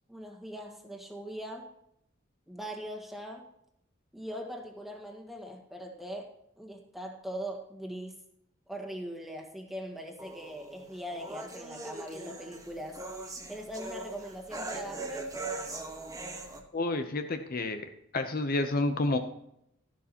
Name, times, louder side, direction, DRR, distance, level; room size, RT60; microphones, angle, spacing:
voice 1, 0.1-1.7 2.5-3.5 4.1-6.3 6.6-8.2 8.7-13.0 13.5-15.3, equal, ahead, 0 dB, 1.8 m, -41 dB
sound 1, 10.2-16.6, right 2 dB, 15° right, 1.3 m, -40 dB
voice 2, 16.7-17.8 18.1-19.2, left 2 dB, 50° left, 7 dB, 0.8 m, -29 dB
12.5 x 11.0 x 2.9 m, 0.75 s
head